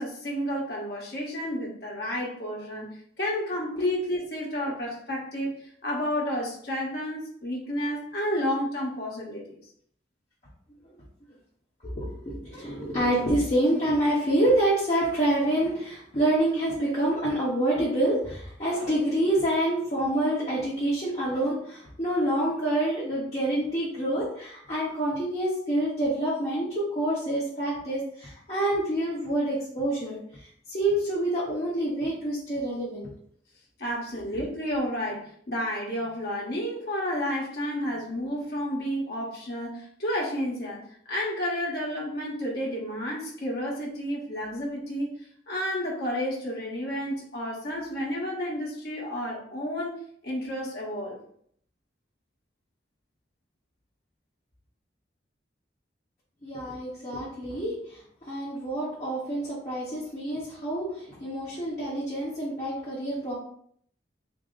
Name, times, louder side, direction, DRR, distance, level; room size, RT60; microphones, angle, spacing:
voice 1, 0.0-2.9 3.2-9.6 33.8-40.8 41.1-45.1 45.5-49.9 50.2-51.2, equal, 55° left, -3 dB, 1.2 m, -31 dB
voice 2, 11.8-33.1 56.4-58.0 58.3-63.3, right 1 dB, 35° left, -10 dB, 0.9 m, -27 dB
3.8 x 2.0 x 3.8 m, 0.64 s
head